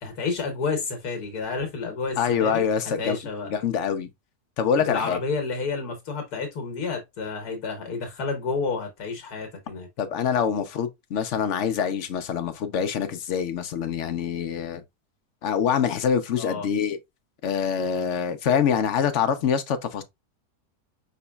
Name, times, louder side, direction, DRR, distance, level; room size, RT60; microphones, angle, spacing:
voice 1, 0.0-2.6 3.0-3.5 4.8-9.9 16.4-16.7, left 4 dB, 80° left, 1.5 m, -30 dB
voice 2, 2.2-3.2 3.4-4.1 4.6-5.2 10.0-14.8 15.4-17.0 17.4-20.0, left 7 dB, 60° left, 0.9 m, -25 dB
5.2 x 3.9 x 2.2 m
omnidirectional pair, 1.6 m